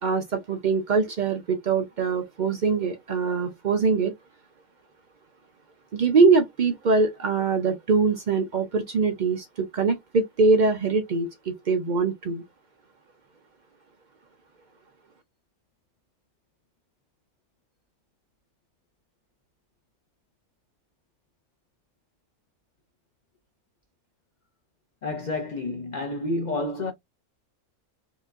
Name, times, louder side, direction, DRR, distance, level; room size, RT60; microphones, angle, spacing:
voice 1, 0.0-4.1 5.9-11.3 11.7-12.4, right 4 dB, 90° right, 0.4 m, -23 dB
voice 2, 25.0-26.9, left 2 dB, 45° left, 0.6 m, -29 dB
4.5 x 2.4 x 2.5 m
omnidirectional pair, 1.5 m